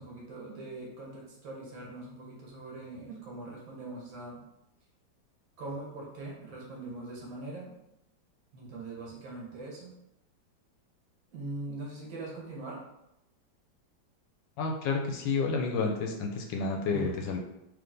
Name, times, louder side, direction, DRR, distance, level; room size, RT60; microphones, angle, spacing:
voice 1, 0.0-4.4 5.6-7.7 8.5-9.9 11.3-12.8 16.9-17.2, right 2 dB, 75° right, -3 dB, 2.0 m, -41 dB
voice 2, 14.6-17.4, left 4 dB, 75° left, 2 dB, 1.2 m, -30 dB
3.5 x 3.2 x 3.8 m, 0.87 s
omnidirectional pair, 2.2 m